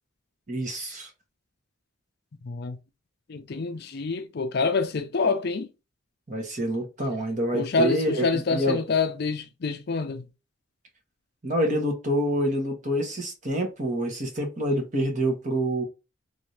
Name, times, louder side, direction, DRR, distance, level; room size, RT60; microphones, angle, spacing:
voice 1, 0.5-1.1 6.3-8.8 11.4-15.8, equal, 40° right, 1.1 m, -27 dB
voice 2, 2.4-2.8 3.3-5.7 7.5-10.2, left 4 dB, 55° left, 0.5 m, -27 dB
3.4 x 2.7 x 3.2 m
head